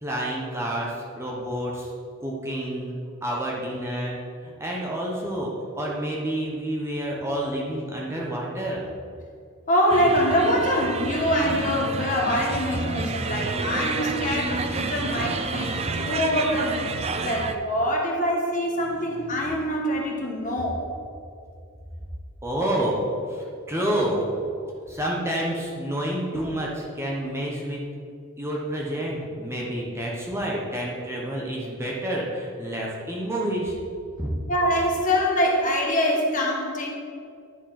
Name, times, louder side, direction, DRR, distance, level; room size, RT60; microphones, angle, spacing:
voice 1, 0.0-1.9 2.2-2.9 3.2-4.2 4.4-8.8 18.9-19.4 22.4-24.3 24.6-27.8 28.4-33.8 34.2-34.3, right 1 dB, 10° right, -3 dB, 1.0 m, -29 dB
voice 2, 9.7-16.9 17.2-20.9 34.5-36.9, equal, 35° left, -1 dB, 1.3 m, -24 dB
sound 1, 9.9-17.6, right 3 dB, 30° right, 0.4 m, -29 dB
10.0 x 4.6 x 5.8 m, 2.4 s
head